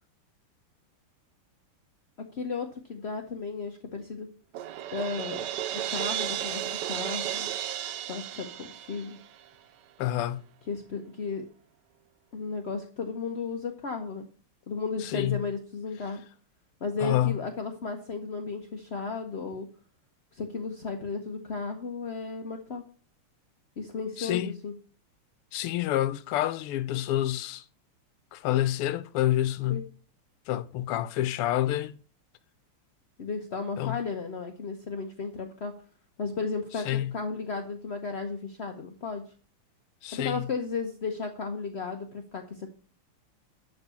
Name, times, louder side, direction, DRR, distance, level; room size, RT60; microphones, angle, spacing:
voice 1, 2.2-4.3 4.9-5.5 5.7-7.5 8.1-9.2 10.7-11.5 12.3-14.3 14.7-16.2 16.8-19.7 20.3-22.8 23.8-24.7 29.7-29.8 33.2-35.7 36.2-39.3 40.1-42.7, left 4 dB, 60° left, 0.6 m, -34 dB
Crash cymbal, 4.5-9.5, right 11 dB, 75° right, 1.0 m, -33 dB
voice 2, 10.0-10.4 15.0-15.4 17.0-17.4 24.2-24.6 25.5-27.6 28.3-29.9 30.5-31.9 33.8-34.0 36.8-37.1 40.0-40.5, left 13 dB, 85° left, 1.6 m, -28 dB
11.5 x 4.0 x 6.8 m
omnidirectional pair, 2.4 m